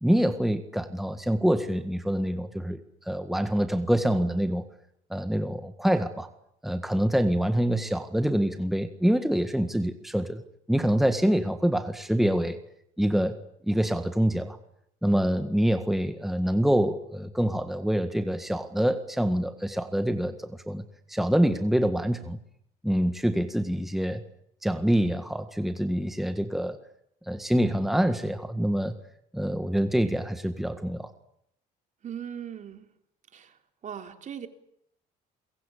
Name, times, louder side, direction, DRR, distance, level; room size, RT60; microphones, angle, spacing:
voice 1, 0.0-2.8 3.1-4.6 5.1-6.3 6.6-10.4 10.7-12.6 13.0-13.4 13.7-14.6 15.0-20.8 21.1-22.4 22.8-24.2 24.6-26.8 27.3-28.9 29.3-31.1, equal, ahead, 8 dB, 1.8 m, -25 dB
voice 2, 32.0-32.9 33.3-34.5, right 8 dB, 45° right, 7 dB, 3.2 m, -39 dB
28.5 x 23.0 x 8.6 m, 0.72 s
cardioid pair, 110°, 17 cm